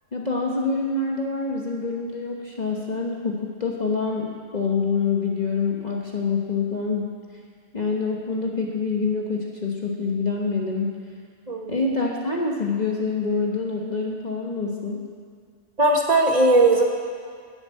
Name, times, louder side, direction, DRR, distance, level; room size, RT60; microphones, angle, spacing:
voice 1, 0.1-7.1 7.7-11.0 11.7-15.0, left 4 dB, 35° left, -1 dB, 1.2 m, -26 dB
voice 2, 11.5-11.8 15.8-16.8, right 2 dB, 30° right, 1 dB, 1.3 m, -18 dB
11.0 x 7.9 x 8.4 m, 2.1 s
omnidirectional pair, 1.3 m